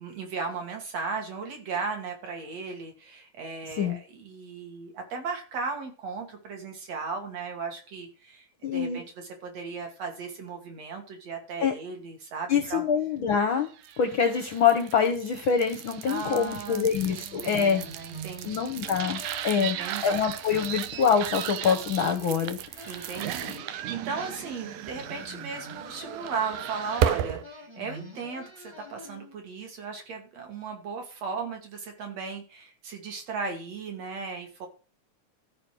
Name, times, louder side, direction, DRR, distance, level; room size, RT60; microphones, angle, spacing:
voice 1, 0.0-8.5 8.7-12.8 16.0-16.8 17.4-18.9 19.6-20.3 22.9-34.7, right 4 dB, 55° right, 3 dB, 3.4 m, -36 dB
voice 2, 8.6-9.0 11.6-11.7 12.5-13.7 14.0-17.8 18.4-19.8 20.0-23.1, left 6 dB, 65° left, 6 dB, 1.2 m, -25 dB
sound 1, 13.8-27.4, right 11 dB, 80° right, 2.2 m, -35 dB
sound 2, 17.1-20.3 20.6-23.7 24.1-29.4, right 1 dB, 10° right, 1.5 m, -46 dB
13.5 x 5.4 x 6.1 m, 0.36 s
omnidirectional pair, 3.6 m